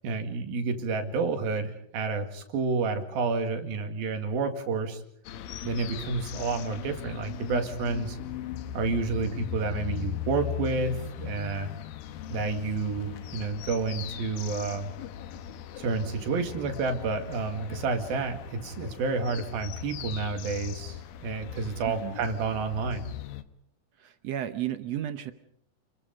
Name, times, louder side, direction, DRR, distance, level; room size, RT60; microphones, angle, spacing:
voice 1, 0.0-5.0 5.6-8.2 8.7-11.7 12.3-14.9 15.8-23.1, right 4 dB, 90° right, 6 dB, 4.0 m, -30 dB
sound 1, 5.3-23.4, left 10 dB, 85° left, 2.9 m, -39 dB
voice 2, 21.9-22.2 24.0-25.3, right 11 dB, 70° right, 10 dB, 1.6 m, -33 dB
29.0 x 21.5 x 5.3 m, 0.70 s
omnidirectional pair, 4.1 m